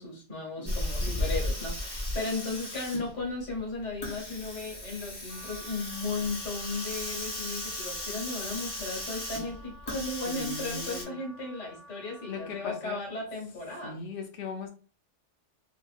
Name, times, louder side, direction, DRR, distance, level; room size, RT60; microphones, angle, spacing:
voice 1, 0.0-14.0, left 3 dB, 85° left, -1 dB, 1.5 m, -35 dB
voice 2, 0.6-1.3 10.2-11.3 12.2-13.0 13.8-14.7, left 4 dB, 60° left, 4 dB, 0.8 m, -39 dB
Hiss, 0.7-11.0, left 1 dB, 25° left, 0.7 m, -35 dB
Wind instrument woodwind instrument, 5.3-12.8, equal, 60° right, 0.9 m, -51 dB
2.9 x 2.5 x 2.4 m, 0.37 s
omnidirectional pair, 1.2 m